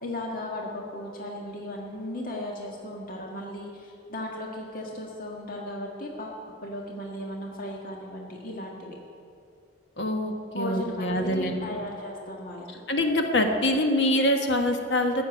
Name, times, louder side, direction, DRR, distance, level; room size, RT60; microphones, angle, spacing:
voice 1, 0.0-8.9 10.5-12.8, left 1 dB, 50° left, -1 dB, 1.7 m, -36 dB
voice 2, 10.0-11.8 12.9-15.2, left 1 dB, 65° left, 4 dB, 1.4 m, -25 dB
14.0 x 7.0 x 9.4 m, 2.5 s
head